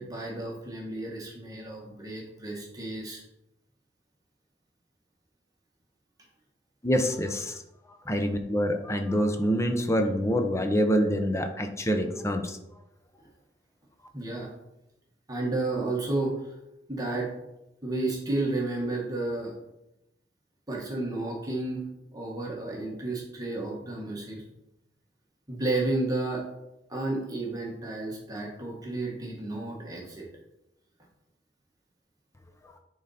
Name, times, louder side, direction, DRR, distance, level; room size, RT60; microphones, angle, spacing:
voice 1, 0.0-3.2 14.1-14.5 15.3-16.5 16.9-17.3 17.8-19.5 20.7-24.4 25.5-26.5 26.9-30.3, right 2 dB, 20° right, -2 dB, 1.4 m, -32 dB
voice 2, 6.8-7.6 8.1-12.6, equal, 15° left, 6 dB, 0.7 m, -26 dB
10.0 x 3.9 x 4.2 m, 0.88 s
head